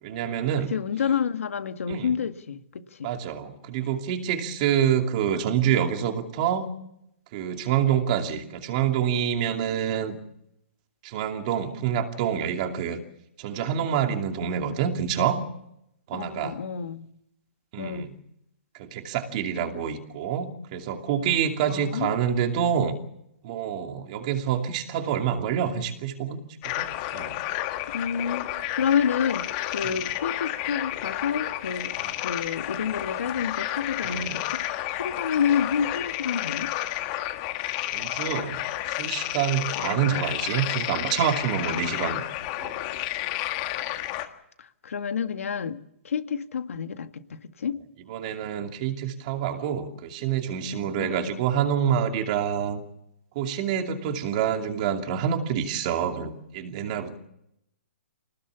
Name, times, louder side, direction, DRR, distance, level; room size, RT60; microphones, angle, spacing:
voice 1, 0.0-0.7 1.9-2.2 3.0-6.7 7.3-10.2 11.0-13.0 13.4-15.4 16.1-16.6 17.7-18.1 18.7-23.0 23.4-27.4 29.8-30.0 32.0-32.1 34.0-34.4 37.9-42.3 42.6-42.8 48.1-52.8 53.3-57.2, right 8 dB, 30° right, 5 dB, 2.7 m, -27 dB
voice 2, 0.7-3.1 16.1-17.1 17.8-18.1 21.7-22.1 27.9-36.7 39.8-40.1 41.7-42.2 44.6-47.8 51.0-51.3, left 7 dB, 80° left, 8 dB, 1.9 m, -29 dB
sound 1, 26.6-44.3, left 15 dB, 30° left, 1.7 m, -31 dB
25.0 x 19.0 x 7.1 m, 0.79 s
hypercardioid pair, 165°, 7 cm